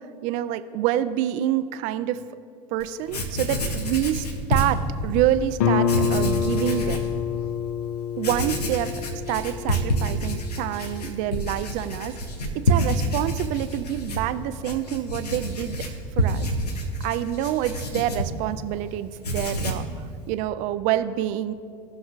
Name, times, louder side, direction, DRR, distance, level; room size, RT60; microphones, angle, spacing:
voice 1, 0.2-2.2 2.7-7.0 8.2-9.0 9.3-12.2 12.5-15.9 16.2-16.5 17.0-19.9 20.3-21.5, right 12 dB, 40° right, 12 dB, 0.4 m, -27 dB
Writing, 2.8-2.9 3.1-5.3 5.8-7.1 7.6-7.7 8.2-18.8 19.1-19.9, equal, 75° left, 1.1 m, -28 dB
Guitar, 5.6-11.0, left 7 dB, 55° left, 0.6 m, -27 dB
18.5 x 6.1 x 2.5 m, 2.3 s
figure-of-eight pair, 80°, 21 cm